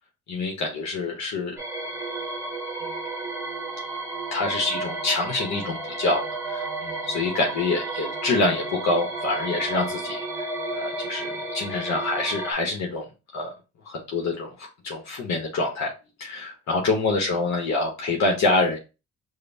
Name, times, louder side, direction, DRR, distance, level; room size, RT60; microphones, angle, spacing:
voice 1, 0.3-1.6 2.8-2.9 4.3-10.5 10.7-13.1 13.3-13.5 13.8-15.9 16.2-18.8, left 3 dB, 65° left, 0 dB, 0.9 m, -26 dB
sound 1, 1.6-12.5, right 2 dB, 10° right, 1.0 m, -32 dB
4.9 x 2.1 x 2.6 m, 0.29 s
cardioid pair, 90°, 30 cm